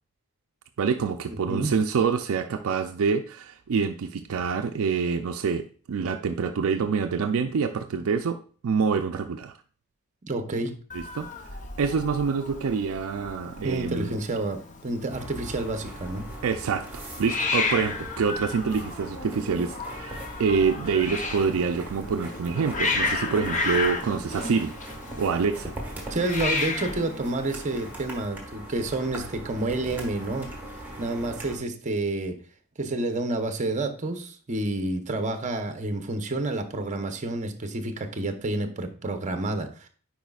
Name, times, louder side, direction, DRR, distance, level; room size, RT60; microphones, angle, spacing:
voice 1, 0.8-9.5 10.9-11.3 11.8-14.1 16.4-24.7 25.2-25.7, right 5 dB, 65° right, 7 dB, 0.4 m, -26 dB
voice 2, 1.3-1.7 10.2-10.8 13.6-16.2 26.1-32.4 32.8-39.9, right 2 dB, 35° right, 7 dB, 0.7 m, -29 dB
Hiss, 10.9-28.2, left 3 dB, 35° left, 0.7 m, -33 dB
sound 1, 15.1-31.6, right 1 dB, 10° right, 1.5 m, -40 dB
9.2 x 4.8 x 2.3 m, 0.41 s
head